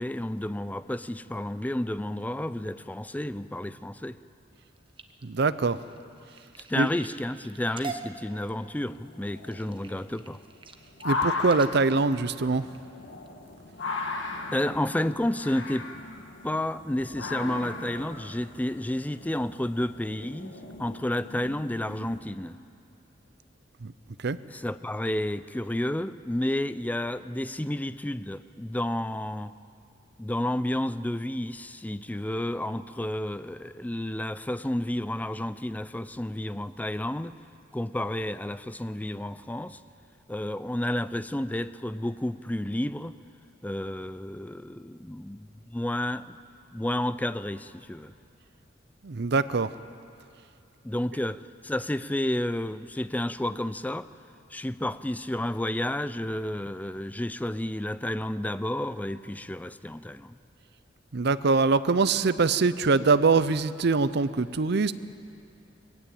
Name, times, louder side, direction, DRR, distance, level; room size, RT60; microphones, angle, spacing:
voice 1, 0.0-4.2 6.7-10.4 14.5-15.9 16.4-22.6 24.5-29.5 30.2-37.3 37.7-39.8 40.3-43.1 43.6-46.4 46.7-48.1 50.8-54.1 54.5-60.4, left 1 dB, 10° left, 14 dB, 0.4 m, -31 dB
sound 1, 4.6-13.3 13.9-14.2 14.6-15.0 15.5-15.6 15.9-16.0, right 5 dB, 25° right, 1.1 m, -45 dB
voice 2, 5.2-5.8 6.8-6.9 11.0-12.6 23.8-23.9 24.2-24.4 49.0-49.8 61.1-64.9, right 4 dB, 60° right, 14 dB, 0.6 m, -23 dB
sound 2, 8.8-22.2, left 3 dB, 70° left, 1.7 m, -37 dB
21.5 x 16.5 x 8.6 m, 2.6 s
head